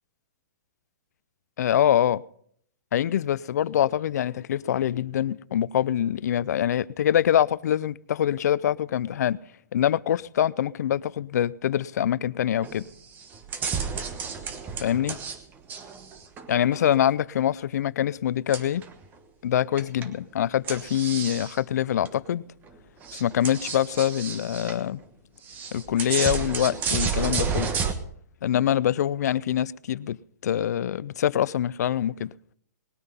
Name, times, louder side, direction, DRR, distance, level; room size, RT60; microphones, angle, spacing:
voice 1, 1.6-2.2 2.9-9.4 9.7-12.9 14.8-15.2 16.5-18.8 19.4-22.4 23.1-25.0 25.7-27.7 28.4-32.3, left 10 dB, 65° left, 0.5 m, -24 dB
sound 1, 12.6-12.9 13.2-15.4 15.7-17.0 18.5-19.0 19.8-20.1 20.7-21.6 22.0-22.1 22.7-22.8 23.0-24.8 25.5-27.9, right 6 dB, 20° right, 1.2 m, -31 dB
19.5 x 9.6 x 5.5 m
hypercardioid pair, 150°, 9 cm